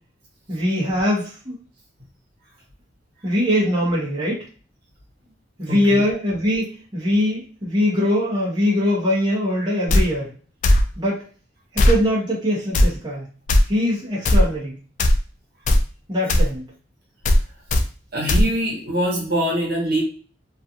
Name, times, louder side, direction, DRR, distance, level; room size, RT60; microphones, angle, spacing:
voice 1, 0.5-1.6 3.2-4.4 5.6-10.3 11.0-11.2 11.7-13.3 13.7-14.8 16.1-16.6, left 1 dB, 25° right, -6 dB, 0.8 m, -22 dB
voice 2, 5.7-6.0 18.1-20.0, right 1 dB, 55° right, -2 dB, 1.0 m, -23 dB
sound 1, 9.9-10.0 10.6-10.8 11.8-12.0 12.7-12.9 13.5-13.6 14.2-14.4 15.0-15.2 15.7-15.8 16.3-16.5 17.2-17.4 17.7-17.8 18.3-18.4, left 1 dB, 45° left, 0.3 m, -15 dB
2.4 x 2.4 x 2.7 m, 0.39 s
head